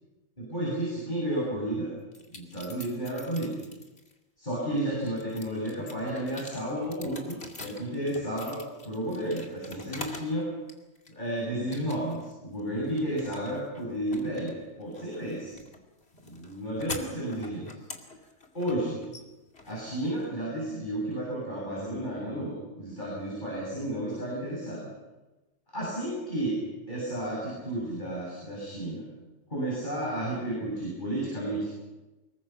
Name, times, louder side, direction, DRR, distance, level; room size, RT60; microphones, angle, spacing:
voice 1, 0.4-1.9 2.3-3.6 4.4-10.5 11.1-15.5 16.2-17.8 18.5-19.0 19.6-24.9 25.7-26.6 26.9-29.1 29.5-31.7, right 1 dB, 35° left, -5 dB, 7.5 m, -32 dB
sound 1, 2.1-4.1 4.6-10.4 10.7-11.3 11.7-12.3 12.6-20.5, left 2 dB, 50° left, 2.8 m, -45 dB
25.0 x 22.5 x 5.9 m, 1.1 s
omnidirectional pair, 1.3 m